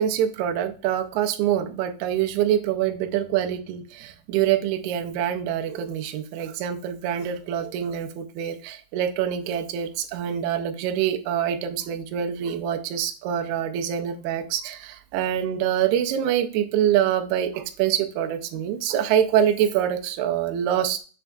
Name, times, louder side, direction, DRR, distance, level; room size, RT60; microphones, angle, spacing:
voice 1, 0.0-21.0, right 10 dB, 80° right, 6 dB, 1.8 m, -25 dB
6.1 x 3.5 x 2.2 m, 0.36 s
omnidirectional pair, 3.9 m